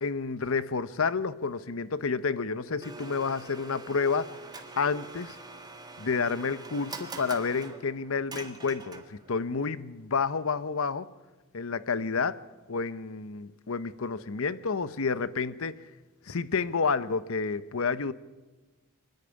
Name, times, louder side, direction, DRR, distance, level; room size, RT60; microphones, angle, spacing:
voice 1, 0.0-4.3 4.8-5.4 6.0-11.1 11.5-12.4 12.7-15.8 16.3-18.1, left 5 dB, 65° left, 0.8 m, -30 dB
Domestic sounds home sounds, 2.8-9.3, right 3 dB, 20° right, 1.7 m, -44 dB
24.5 x 10.5 x 9.8 m
head